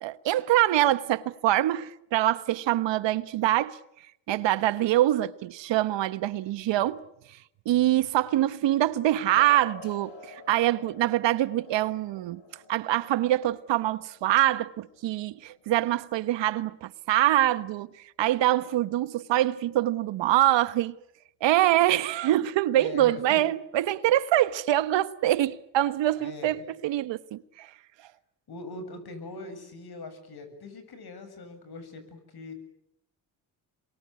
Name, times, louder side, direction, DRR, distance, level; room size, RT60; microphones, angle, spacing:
voice 1, 0.0-3.8 4.3-7.0 7.6-12.4 12.7-17.9 18.2-20.9 21.4-27.7, right 14 dB, 70° right, 1.2 m, -24 dB
sound 1, 9.4-16.4, left 3 dB, 70° left, 4.2 m, -49 dB
voice 2, 22.8-23.4 26.2-26.7 28.5-32.5, left 2 dB, 55° left, 7.5 m, -42 dB
26.5 x 23.0 x 9.4 m
supercardioid pair, 75°, 46 cm